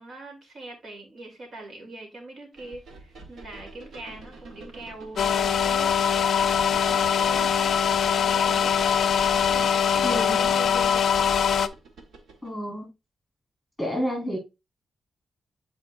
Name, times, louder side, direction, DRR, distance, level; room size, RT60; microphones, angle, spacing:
voice 1, 0.0-6.3 6.7-11.0, right 2 dB, 60° right, 3.0 m, -43 dB
sound 1, 2.6-12.5, right 3 dB, 85° right, 1.5 m, -46 dB
sound 2, 5.2-11.7, left 7 dB, 75° left, 0.4 m, -22 dB
voice 2, 10.0-10.5 12.4-12.9 13.8-14.4, equal, 5° left, 4.1 m, -29 dB
8.2 x 4.9 x 2.5 m
cardioid pair, 90°, 0 cm